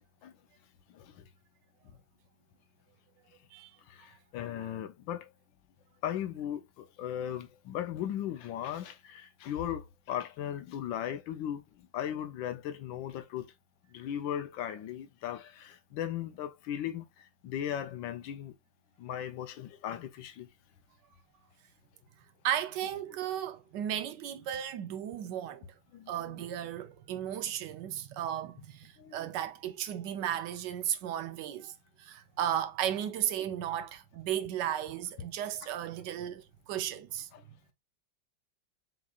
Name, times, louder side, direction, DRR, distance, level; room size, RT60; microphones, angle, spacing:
voice 1, 3.9-5.3 6.0-13.5 13.9-18.5 19.0-20.5 25.9-26.4 29.0-29.2 35.6-35.7 37.3-37.4, left 10 dB, 85° left, 1.4 m, -37 dB
voice 2, 22.4-25.7 26.1-37.3, right 10 dB, 75° right, 1.2 m, -35 dB
6.1 x 3.0 x 2.3 m
omnidirectional pair, 2.0 m